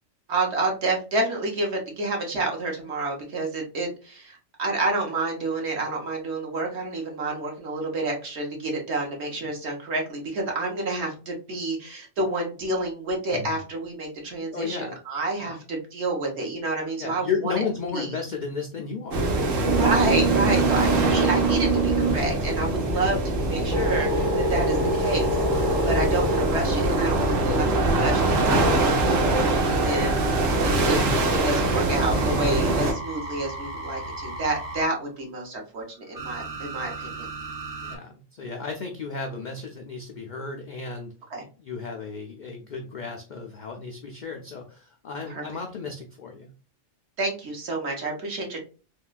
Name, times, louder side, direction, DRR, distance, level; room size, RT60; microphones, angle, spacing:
voice 1, 0.3-14.8 15.1-17.5 17.9-18.1 19.7-23.2 23.5-31.0 31.3-37.3 41.3-41.4 45.3-45.4 47.2-48.6, right 2 dB, 60° right, 1 dB, 1.2 m, -29 dB
voice 2, 14.4-15.0 15.4-15.5 17.0-19.3 20.4-20.7 22.0-22.3 22.9-23.1 32.3-32.6 37.8-41.1 41.6-46.5, left 5 dB, 85° left, 3 dB, 0.4 m, -34 dB
sound 1, 19.1-32.9, right 2 dB, 85° right, 1.1 m, -24 dB
sound 2, 19.3-22.8 23.3-26.8 27.3-31.0 32.1-34.9 36.1-38.0, right 3 dB, 30° right, 0.8 m, -28 dB
3.5 x 2.2 x 2.4 m, 0.35 s
omnidirectional pair, 1.3 m